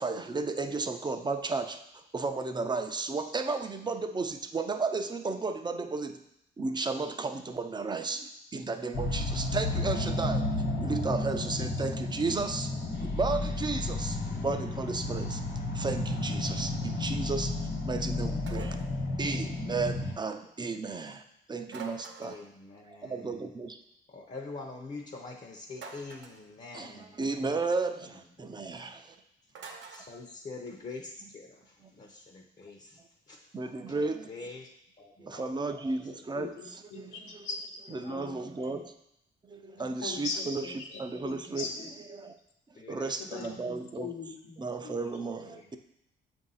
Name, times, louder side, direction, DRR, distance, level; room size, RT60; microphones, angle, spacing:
voice 1, 0.0-6.2 6.6-10.5 10.8-12.7 13.0-15.4 15.7-17.6 17.8-18.8 19.2-21.2 21.5-22.4 22.9-23.8 26.7-29.2 31.8-31.9 33.5-34.3 35.2-37.2 37.9-38.9 39.4-40.7 41.0-41.7 42.1-42.4 42.9-44.1 44.6-45.8, right 3 dB, 20° right, 8 dB, 0.5 m, -33 dB
sound 1, 8.9-20.1, left 2 dB, 60° left, 1.2 m, -32 dB
sound 2, 18.5-19.0 21.7-22.5 25.7-26.4 29.5-30.1, right 5 dB, 65° right, 0.8 m, -45 dB
voice 2, 22.2-23.5 24.1-27.2 28.4-28.9 29.9-33.0 34.0-34.7 35.0-35.7 36.0-36.2 38.0-38.8 39.8-40.3 42.7-43.6 45.5-45.7, left 3 dB, 35° left, 2 dB, 0.7 m, -45 dB
voice 3, 36.3-37.8 38.1-38.8 40.0-41.9 43.2-45.0, left 4 dB, 85° left, 2 dB, 1.0 m, -40 dB
6.9 x 2.6 x 5.5 m, 0.82 s
cardioid pair, 90°, 20 cm